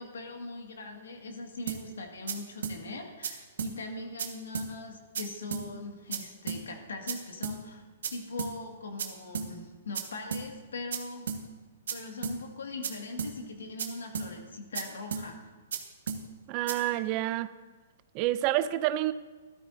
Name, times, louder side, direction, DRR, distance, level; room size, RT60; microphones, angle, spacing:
voice 1, 0.0-11.3 11.9-15.5, left 3 dB, 90° left, 3 dB, 1.9 m, -41 dB
sound 1, 1.7-1.8 2.3-2.4 2.6-2.8 3.2-3.3 3.6-3.7 4.2-4.3 4.5-4.7 5.1-5.2 5.5-5.6 6.1-6.2 6.5-6.6 7.1-7.2 7.4-7.6 8.0-8.1 8.4-8.5 9.0-9.1 9.3-9.5 9.9-10.0 10.3-10.4 10.9-11.0 11.3-11.4 11.9-12.0 12.2-12.4 12.8-12.9 13.2-13.3 13.8-13.9 14.1-14.3 14.7-14.8 15.1-15.2 15.7-15.8 16.1-16.2 16.7-16.8, right 6 dB, 75° right, 1.4 m, -33 dB
voice 2, 16.5-17.5 18.1-19.1, right 14 dB, 35° right, 15 dB, 0.4 m, -28 dB
13.5 x 12.5 x 2.6 m, 1.3 s
hypercardioid pair, 140°, 0 cm